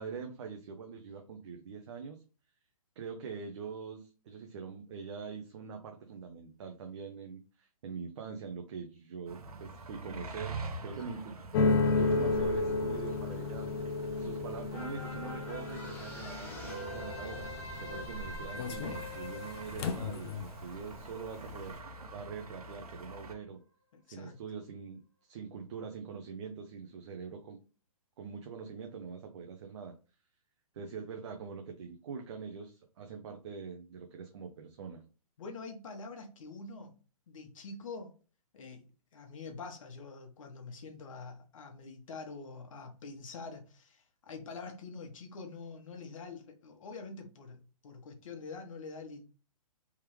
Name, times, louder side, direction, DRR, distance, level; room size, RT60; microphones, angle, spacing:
voice 1, 0.0-2.2 3.0-11.4 11.9-13.9 14.2-23.6 24.1-27.6 28.2-29.9 30.7-35.0, right 6 dB, 50° right, 0.7 m, -44 dB
sound 1, 9.3-23.3, right 3 dB, 85° right, 1.0 m, -46 dB
sound 2, 11.5-20.8 21.1-21.7, left 3 dB, 40° left, 0.5 m, -33 dB
sound 3, 14.7-21.4 21.8-21.9, left 1 dB, 10° left, 1.2 m, -44 dB
voice 2, 23.9-24.4 35.4-36.9 37.3-38.1 38.5-38.8 39.1-49.2, left 4 dB, 60° left, 1.2 m, -45 dB
3.5 x 3.2 x 3.0 m
hypercardioid pair, 150°, 19 cm